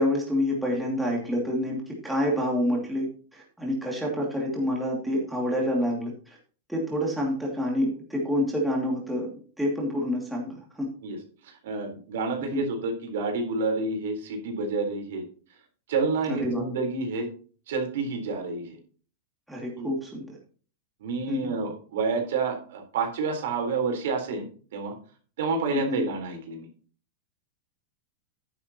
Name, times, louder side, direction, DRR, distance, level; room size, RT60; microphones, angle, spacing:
voice 1, 0.0-6.4 6.7-9.3 9.6-10.9 12.5-12.6 16.3-16.6 19.5-20.4 21.3-21.5 25.7-26.0, left 1 dB, 5° right, -3 dB, 2.5 m, -28 dB
voice 2, 11.4-15.2 15.9-17.3 17.7-18.8 19.8-19.9 21.0-24.9 25.4-26.7, right 4 dB, 70° right, 4 dB, 4.0 m, -29 dB
11.5 x 10.5 x 3.0 m, 0.40 s
supercardioid pair, 170°, 0 cm